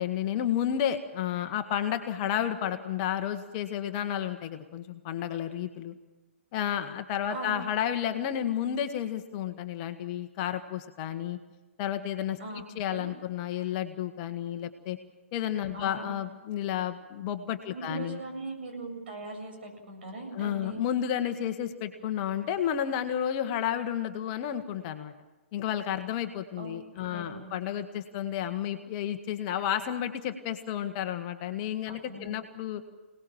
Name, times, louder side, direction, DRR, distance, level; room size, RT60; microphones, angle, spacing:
voice 1, 0.0-5.9 6.5-11.4 11.8-15.0 15.3-18.2 20.3-25.1 25.5-32.8, left 10 dB, 30° left, 7 dB, 1.5 m, -31 dB
voice 2, 15.7-16.1 17.7-20.8 26.6-27.5 31.9-32.3, right 2 dB, 55° right, 3 dB, 7.5 m, -40 dB
27.0 x 19.0 x 7.5 m, 1.1 s
figure-of-eight pair, 125°, 7 cm